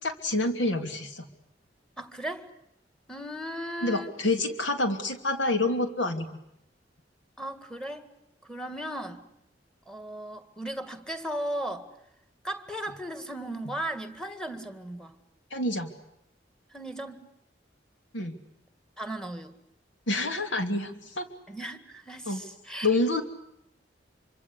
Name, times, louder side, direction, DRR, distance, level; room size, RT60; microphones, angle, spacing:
voice 1, 0.0-1.3 3.8-6.3 15.5-15.9 18.1-18.3 20.1-21.2 22.3-22.4 22.8-23.2, left 2 dB, 85° left, 2.9 m, -27 dB
voice 2, 2.0-2.5 3.1-4.1 7.4-8.1 8.4-9.3 9.9-11.9 12.4-15.2 16.7-17.3 19.0-19.6 21.5-23.0, right 1 dB, 5° left, 2.0 m, -36 dB
26.0 x 25.5 x 8.5 m
head